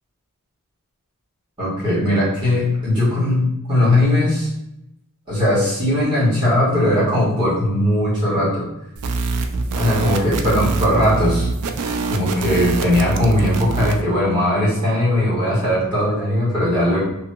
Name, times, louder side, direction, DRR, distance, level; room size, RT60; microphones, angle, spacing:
voice 1, 1.6-4.5 5.3-8.7 9.8-11.5 12.1-17.0, left 1 dB, 20° right, -10 dB, 1.4 m, -19 dB
sound 1, 9.0-14.0, right 3 dB, 85° right, 0.3 m, -24 dB
2.9 x 2.8 x 2.2 m, 0.84 s
head